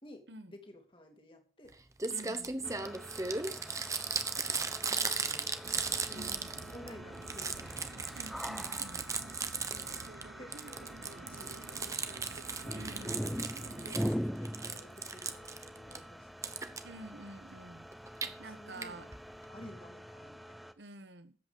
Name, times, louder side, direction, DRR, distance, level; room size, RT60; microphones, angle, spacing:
voice 1, 0.0-1.7 2.7-3.6 4.3-4.5 4.8-6.3 6.7-7.9 9.7-10.1 10.4-12.0 12.4-12.6 12.9-16.4 18.2-19.1 19.5-20.7, left 1 dB, 30° left, 3 dB, 2.7 m, -54 dB
Crumpling crinkling, 1.7-1.8 2.0-6.9 7.2-10.2 10.5-14.1 14.5-16.0 16.4-16.8 17.9-18.3 18.8-18.9 19.1-19.2 19.4-19.5, right 4 dB, 20° right, 0.9 m, -37 dB
voice 2, 2.1-2.6 6.1-6.5 8.1-9.1 12.7-13.5 16.8-17.9 18.4-19.1 20.8-21.4, right 2 dB, 80° right, 11 dB, 1.2 m, -49 dB
sound 1, 2.6-20.7, equal, ahead, 0.6 m, -43 dB
sound 2, 5.6-14.2, right 3 dB, 55° right, 0.6 m, -50 dB
12.5 x 8.4 x 5.3 m, 0.41 s
head